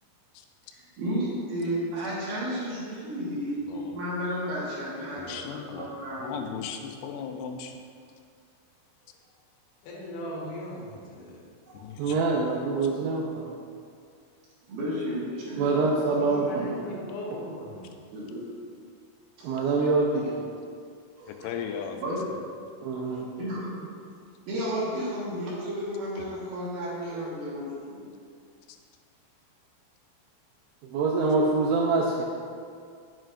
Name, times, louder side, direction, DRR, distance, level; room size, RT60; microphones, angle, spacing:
voice 1, 0.7-6.5 11.7-11.9 14.7-17.0 18.1-18.5 19.4-19.6 21.2-21.5 21.9-22.2 23.4-23.7 24.5-28.1, equal, 70° right, -7 dB, 2.4 m, -33 dB
voice 2, 3.7-4.0 5.2-5.9 6.2-7.8 11.7-12.2 21.3-22.0 22.3-22.4, left 7 dB, 90° left, 5 dB, 3.3 m, -37 dB
voice 3, 9.8-11.4 15.9-17.9, left 1 dB, 70° left, -4 dB, 3.3 m, -38 dB
voice 4, 12.0-13.5 15.6-16.8 19.4-20.4 22.8-23.2 30.9-32.3, right 3 dB, 85° right, -2 dB, 2.6 m, -25 dB
7.8 x 7.6 x 2.5 m, 2.2 s
omnidirectional pair, 5.9 m